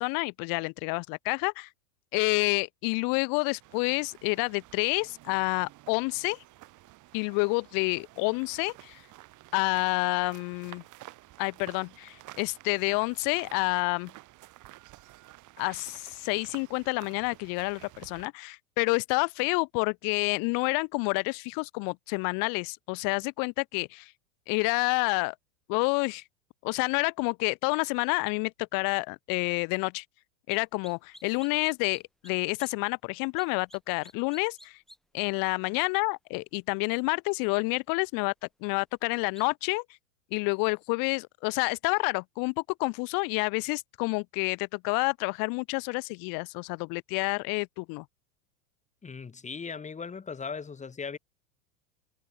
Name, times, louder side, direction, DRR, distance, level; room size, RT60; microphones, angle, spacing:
voice 1, 0.0-1.7 2.1-6.4 7.1-9.0 9.5-10.8 11.4-14.1 15.6-24.1 24.5-25.3 25.7-26.2 26.6-30.0 30.5-34.8 35.1-38.3 38.6-39.8 40.3-48.0, left 32 dB, 50° left, 3.1 m, -29 dB
sound 1, 3.6-18.3, right 17 dB, 45° right, 7.4 m, -52 dB
sound 2, 30.5-30.6 30.8-32.3 32.6-32.7 33.4-33.8 34.0-35.0 39.4-39.5, equal, ahead, 3.9 m, -51 dB
voice 2, 49.0-51.2, left 5 dB, 15° left, 3.5 m, -38 dB
hypercardioid pair, 110°, 42 cm